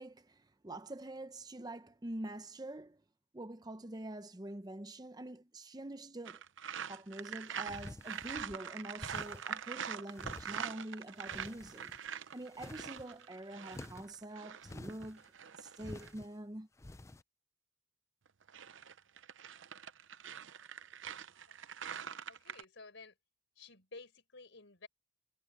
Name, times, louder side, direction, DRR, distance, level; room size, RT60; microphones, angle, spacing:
voice 1, 0.0-3.0 3.3-6.4 6.9-15.2 15.5-16.7, right 1 dB, 20° right, 0.7 m, -46 dB
sound 1, 6.2-16.1 18.3-22.6, right 8 dB, 70° right, 0.7 m, -44 dB
sound 2, 7.7-8.6 9.0-9.6 10.1-10.8 11.2-12.1 12.4-13.1 13.7-14.2 14.6-15.3 15.8-16.3 16.8-17.2, left 2 dB, 15° left, 0.4 m, -49 dB
voice 2, 22.3-23.2 23.6-24.9, left 3 dB, 70° left, 4.5 m, -53 dB
head